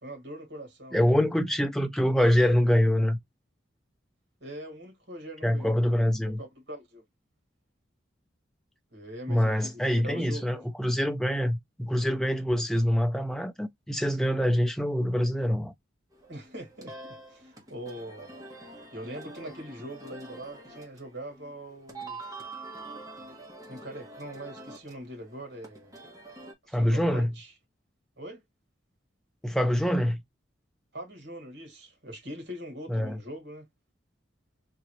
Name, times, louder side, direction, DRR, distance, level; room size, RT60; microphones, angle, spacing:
voice 1, 0.0-1.1 4.4-5.8 6.2-7.0 8.9-10.7 16.3-18.3 18.9-22.2 23.7-26.0 26.6-27.5 28.2-28.4 30.9-33.7, right 1 dB, 65° right, 2.0 m, -42 dB
voice 2, 0.9-3.2 5.4-6.4 9.3-15.7 26.7-27.3 29.4-30.2 32.9-33.2, equal, ahead, 0.5 m, -25 dB
sound 1, 16.1-26.5, right 2 dB, 20° right, 1.3 m, -45 dB
3.8 x 3.2 x 3.0 m
head